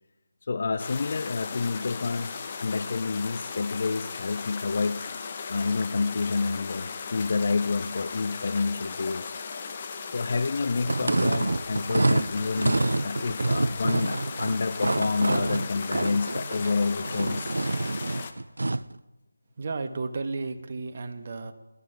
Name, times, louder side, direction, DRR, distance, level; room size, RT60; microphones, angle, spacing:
voice 1, 0.4-5.0 5.5-9.4 10.1-17.6, left 4 dB, 50° left, 11 dB, 0.5 m, -29 dB
sound 1, 0.8-18.3, left 5 dB, 30° left, 0.9 m, -37 dB
sound 2, 10.8-18.9, right 2 dB, 75° right, 0.4 m, -27 dB
voice 2, 19.6-21.5, right 3 dB, 40° right, 7 dB, 1.1 m, -33 dB
21.0 x 11.0 x 3.4 m, 1.1 s
figure-of-eight pair, 160°, 0 cm